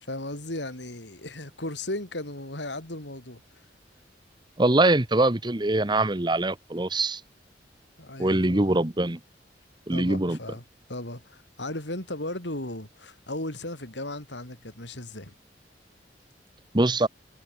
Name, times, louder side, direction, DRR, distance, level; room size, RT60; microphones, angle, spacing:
voice 1, 0.1-3.4 8.0-8.7 9.9-10.6 10.9-15.3, left 1 dB, 80° left, 6.3 m, -36 dB
voice 2, 4.6-7.2 8.2-9.2 9.9-10.4 16.7-17.1, right 2 dB, 25° right, 1.2 m, -23 dB
head